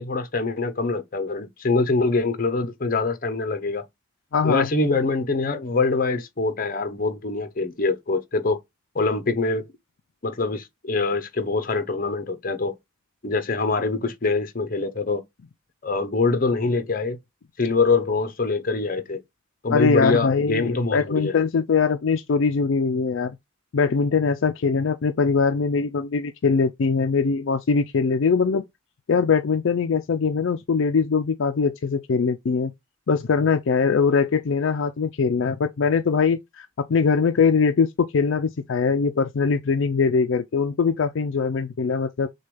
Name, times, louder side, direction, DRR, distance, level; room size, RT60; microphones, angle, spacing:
voice 1, 0.0-3.9 4.4-8.6 8.9-9.7 10.2-12.7 13.2-15.2 15.8-17.2 17.6-19.2 19.6-21.3, left 3 dB, 40° left, 0.7 m, -24 dB
voice 2, 4.3-4.7 19.7-23.4 23.7-28.6 29.1-32.7 33.1-42.3, left 5 dB, 65° left, 0.4 m, -22 dB
6.5 x 2.3 x 3.3 m
head